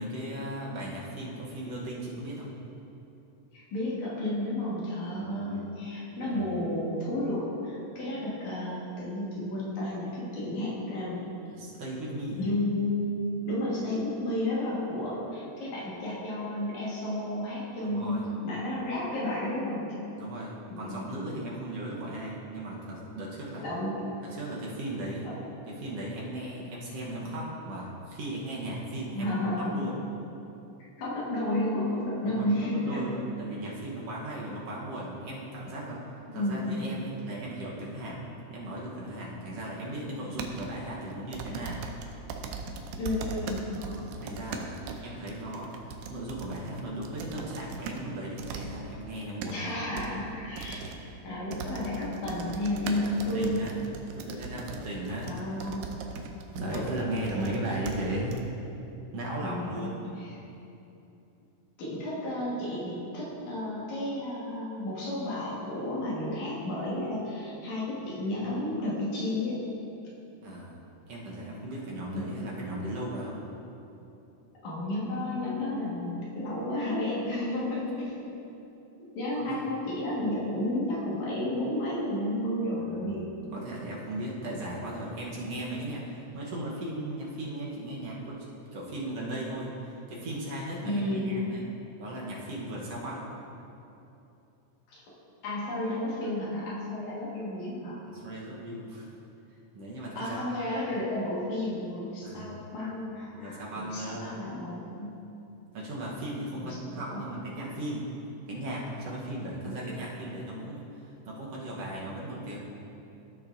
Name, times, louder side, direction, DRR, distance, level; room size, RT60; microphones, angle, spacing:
voice 1, 0.0-2.5 5.2-5.7 6.2-6.5 11.5-12.4 17.8-18.2 20.2-23.7 24.2-25.3 25.7-29.3 29.7-30.0 32.2-36.0 36.3-41.8 43.8-50.2 53.0-53.9 54.1-55.4 56.5-58.4 59.1-60.0 70.4-70.8 71.1-73.4 79.3-79.6 82.9-83.2 83.5-88.4 88.7-91.6 92.0-93.3 98.1-99.1 99.7-100.4 102.2-102.5 103.3-104.3 105.7-108.1 108.5-112.6, right 1 dB, 65° right, -5 dB, 2.0 m, -37 dB
voice 2, 3.5-11.2 12.3-13.1 13.4-20.0 20.7-21.1 23.6-24.2 25.2-25.4 29.1-29.8 30.8-33.1 36.3-36.8 43.0-43.8 49.5-50.8 51.2-53.7 55.2-55.9 56.7-56.9 57.3-57.6 59.4-60.4 61.8-69.6 72.1-72.4 74.6-78.1 79.0-83.3 90.8-91.6 94.9-95.0 95.4-98.0 100.2-105.2 106.6-107.3 109.6-110.0, left 1 dB, 75° left, -7 dB, 3.1 m, -32 dB
sound 1, 40.4-40.7 41.3-48.0 48.4-48.7 49.1-49.5 50.0-50.1 50.6-51.0 51.5-57.6 57.9-58.0 58.3-58.4, right 5 dB, 90° right, 2.1 m, -39 dB
15.5 x 6.3 x 2.6 m, 2.9 s
omnidirectional pair, 3.4 m